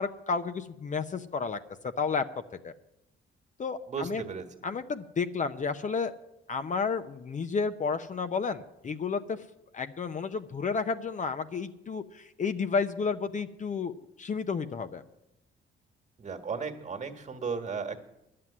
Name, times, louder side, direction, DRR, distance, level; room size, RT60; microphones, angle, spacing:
voice 1, 0.0-2.2 2.6-2.7 3.6-4.2 4.6-6.1 6.5-9.4 9.7-15.0, left 5 dB, 40° left, 9 dB, 0.7 m, -31 dB
voice 2, 3.9-4.4 16.2-18.0, right 5 dB, 35° right, 5 dB, 1.6 m, -35 dB
11.0 x 7.7 x 9.7 m, 0.88 s
cardioid pair, 90°, 20 cm